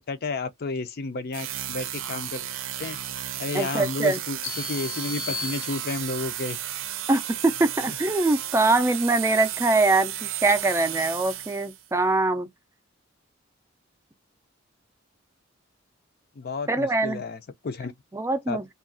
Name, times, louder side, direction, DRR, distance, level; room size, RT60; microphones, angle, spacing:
voice 1, 0.1-2.4 2.8-3.0 3.4-6.6 16.4-17.9 18.5-18.6, left 3 dB, 50° left, 0.5 m, -31 dB
sound 1, 1.3-11.9, right 11 dB, 80° right, 0.5 m, -33 dB
voice 2, 3.5-4.2 7.1-12.5 16.7-17.2 18.1-18.7, right 2 dB, 15° right, 0.4 m, -23 dB
sound 2, 4.4-6.3, left 6 dB, 90° left, 0.8 m, -36 dB
2.7 x 2.3 x 2.5 m
head